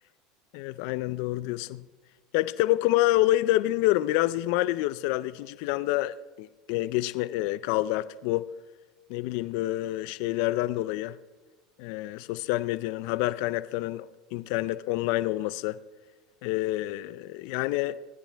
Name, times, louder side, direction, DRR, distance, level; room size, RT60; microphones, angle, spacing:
voice 1, 0.5-1.8 2.3-8.4 9.1-11.2 11.8-15.8 16.4-18.0, left 16 dB, 70° left, 0.5 m, -27 dB
19.0 x 14.5 x 3.4 m
supercardioid pair, 100°, 0 cm